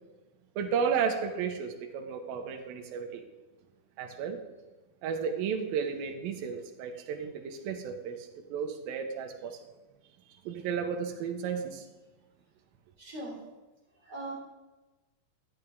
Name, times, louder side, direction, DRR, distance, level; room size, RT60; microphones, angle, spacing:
voice 1, 0.6-3.2 4.0-4.4 5.0-9.6 10.4-11.9, right 6 dB, 85° right, 5 dB, 2.5 m, -33 dB
voice 2, 13.0-13.4 14.0-14.3, right 2 dB, 25° right, -5 dB, 3.7 m, -39 dB
12.0 x 8.7 x 3.4 m, 1.1 s
omnidirectional pair, 4.1 m